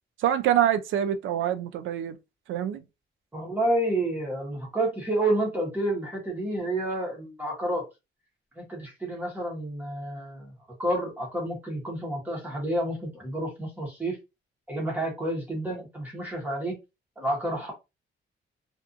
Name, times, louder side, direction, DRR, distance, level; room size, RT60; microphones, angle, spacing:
voice 1, 0.2-2.2 2.5-2.8, right 10 dB, 80° right, 0.4 m, -25 dB
voice 2, 3.3-7.8 8.6-10.5 10.8-14.2 14.7-16.8 17.2-17.7, right 1 dB, 10° right, 1.0 m, -29 dB
2.6 x 2.4 x 2.4 m
wide cardioid pair, 175°, 20 cm